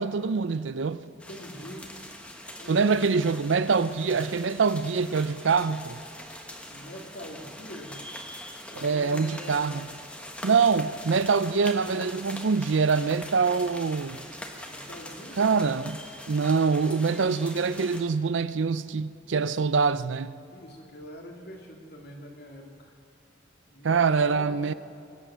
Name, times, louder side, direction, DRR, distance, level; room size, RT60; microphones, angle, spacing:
voice 1, 0.0-1.0 2.7-6.0 8.7-9.9 10.4-14.2 15.4-16.0 16.3-20.3 23.8-24.7, right 5 dB, 75° right, 0.5 m, -24 dB
voice 2, 1.1-2.0 2.6-3.1 6.7-8.0 8.7-9.7 14.7-15.6 20.5-22.9 23.7-24.6, equal, 55° left, 2.6 m, -43 dB
sound 1, 1.2-18.0, left 1 dB, 5° left, 1.3 m, -43 dB
23.5 x 8.1 x 7.4 m
head